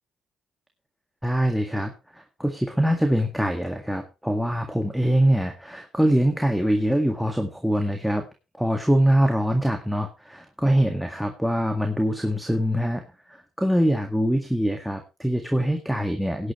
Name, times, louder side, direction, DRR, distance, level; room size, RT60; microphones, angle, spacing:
voice 1, 1.2-8.2 8.6-13.0 13.3-16.5, equal, ahead, 4 dB, 1.9 m, -23 dB
17.0 x 10.0 x 3.1 m, 0.28 s
cardioid pair, 90°, 0 cm